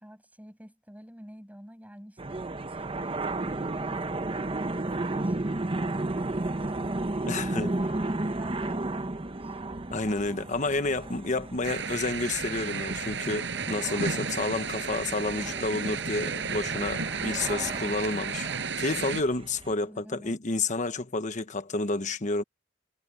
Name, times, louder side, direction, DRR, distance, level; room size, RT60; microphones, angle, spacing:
voice 1, 0.0-5.7 5.9-7.2 7.5-9.6 19.8-20.4, equal, 10° right, 7.1 m, -49 dB
sound 1, 2.2-19.7, right 2 dB, 30° right, 0.9 m, -34 dB
voice 2, 7.3-7.7 9.9-18.5 18.8-22.4, left 3 dB, 40° left, 1.1 m, -30 dB
sound 2, 11.6-19.2, right 5 dB, 65° right, 5.9 m, -33 dB
head